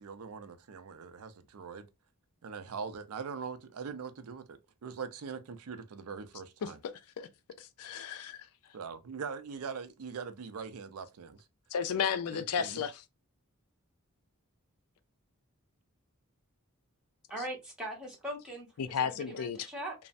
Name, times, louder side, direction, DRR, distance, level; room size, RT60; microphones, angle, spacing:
voice 1, 0.0-1.9 2.4-6.8 8.7-11.4 12.3-12.8, right 5 dB, 90° right, 0.5 m, -42 dB
voice 2, 7.6-8.5 11.7-13.0 18.8-19.7, left 7 dB, 90° left, 0.4 m, -33 dB
voice 3, 17.3-19.9, right 1 dB, 5° right, 1.0 m, -41 dB
3.1 x 2.0 x 2.5 m
head